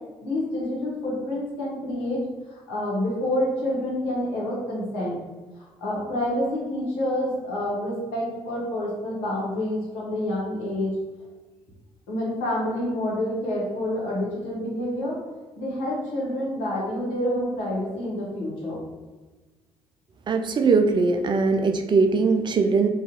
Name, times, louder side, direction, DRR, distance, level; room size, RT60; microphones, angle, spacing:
voice 1, 0.2-2.2 2.5-5.2 5.6-11.0 12.1-15.2 15.6-18.8, left 1 dB, 80° left, -5 dB, 0.8 m, -28 dB
voice 2, 20.3-22.9, right 4 dB, 35° right, 6 dB, 0.4 m, -21 dB
2.4 x 2.3 x 2.9 m, 1.3 s
hypercardioid pair, 50°, 14 cm